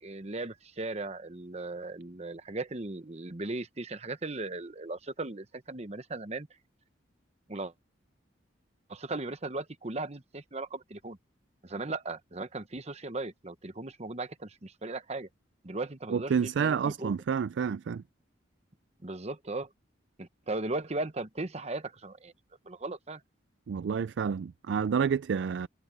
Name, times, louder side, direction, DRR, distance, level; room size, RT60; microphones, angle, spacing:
voice 1, 0.0-6.5 7.5-7.7 8.9-11.2 11.6-15.3 15.6-17.1 19.0-19.7 20.2-22.3 22.6-23.2, right 2 dB, 35° right, 1.1 m, -37 dB
voice 2, 16.1-18.0 23.7-25.7, right 6 dB, 70° right, 0.3 m, -29 dB
head